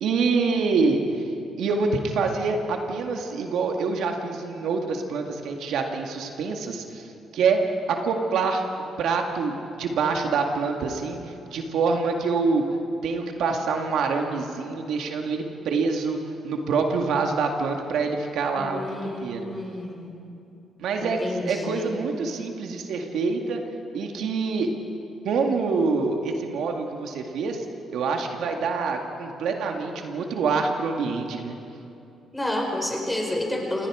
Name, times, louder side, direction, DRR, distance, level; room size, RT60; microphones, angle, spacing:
voice 1, 0.0-1.0 1.6-8.6 9.0-12.8 13.0-16.2 16.4-19.5 20.8-23.6 23.9-24.7 25.2-27.6 27.9-31.6, right 4 dB, 80° right, 3 dB, 2.0 m, -26 dB
voice 2, 18.6-20.1 21.0-22.0 32.3-33.9, left 1 dB, 10° left, 1 dB, 5.3 m, -30 dB
29.0 x 18.0 x 5.0 m, 2.7 s
cardioid pair, 90°, 0 cm